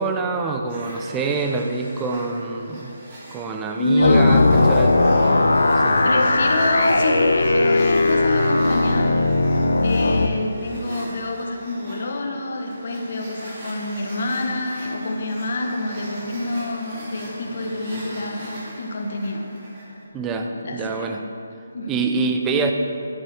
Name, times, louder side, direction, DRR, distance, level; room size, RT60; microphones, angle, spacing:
voice 1, 0.0-2.9 3.3-6.0 20.1-21.2 21.9-22.7, right 4 dB, 10° right, 4 dB, 0.5 m, -26 dB
sound 1, 0.7-20.0, right 1 dB, 30° right, 1.9 m, -41 dB
voice 2, 3.8-4.5 6.0-9.1 9.8-19.4 20.6-21.1 21.7-22.0, left 2 dB, 50° left, 2 dB, 1.1 m, -26 dB
sound 2, 4.0-10.3, left 2 dB, 90° left, 0.6 m, -18 dB
10.5 x 8.4 x 3.4 m, 2.6 s
hypercardioid pair, 165°, 0 cm